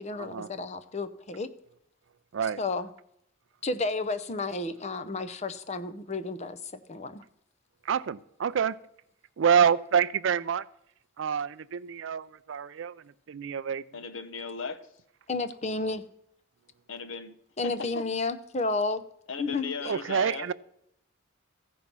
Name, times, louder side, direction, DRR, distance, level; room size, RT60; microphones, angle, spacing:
voice 1, 0.0-1.5 2.6-2.9 3.6-6.6 6.9-7.2 15.3-16.0 17.6-19.0 19.4-19.9, left 3 dB, 30° left, 10 dB, 0.6 m, -31 dB
voice 2, 7.9-8.8 9.4-10.6 11.2-13.8 19.9-20.5, right 7 dB, 65° right, 18 dB, 0.4 m, -27 dB
voice 3, 13.9-14.8 16.9-17.3 17.6-18.0 19.3-20.5, left 5 dB, 65° left, 9 dB, 0.9 m, -37 dB
14.5 x 5.3 x 6.0 m, 0.75 s
head